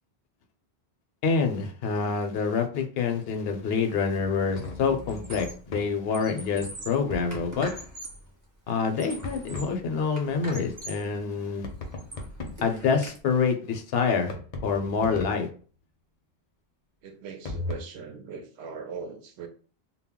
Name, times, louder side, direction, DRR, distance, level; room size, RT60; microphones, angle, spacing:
voice 1, 1.2-7.7 8.7-11.7 12.6-14.4 14.6-15.5, left 5 dB, 75° left, 0.8 m, -26 dB
Squeak, 3.9-4.2 4.5-5.7 6.0-8.3 8.8-9.8 10.2-11.1 11.6-13.2, right 1 dB, 20° right, 0.8 m, -43 dB
sound 1, 4.5-5.9 7.1-7.6 9.2-9.7 11.6-12.8 14.2-15.5 17.4-17.8, left 2 dB, 45° left, 0.6 m, -37 dB
voice 2, 17.0-19.5, right 5 dB, 85° right, 0.9 m, -40 dB
2.2 x 2.1 x 3.5 m
omnidirectional pair, 1.1 m